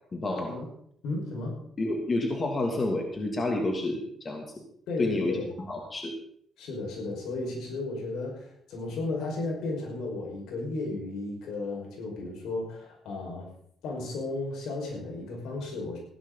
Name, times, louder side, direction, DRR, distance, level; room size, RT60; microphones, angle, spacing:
voice 1, 0.1-0.6 1.8-4.4 5.0-6.1, left 2 dB, 35° left, 2 dB, 2.5 m, -29 dB
voice 2, 1.0-1.6 4.9-5.5 6.6-13.5 13.8-16.0, left 2 dB, 85° left, 0 dB, 5.2 m, -34 dB
16.0 x 12.0 x 4.0 m, 0.67 s
cardioid pair, 90°, 0 cm